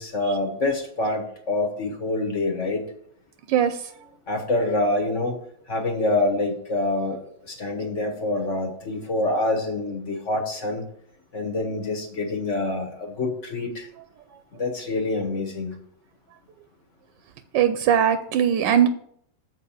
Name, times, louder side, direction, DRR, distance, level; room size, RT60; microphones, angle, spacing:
voice 1, 0.0-2.9 4.3-5.3 5.7-10.8 11.3-13.9 14.5-15.8, left 2 dB, 45° left, 3 dB, 1.4 m, -26 dB
voice 2, 17.5-18.9, right 9 dB, 85° right, 10 dB, 1.3 m, -19 dB
7.3 x 4.6 x 7.0 m, 0.66 s
omnidirectional pair, 2.0 m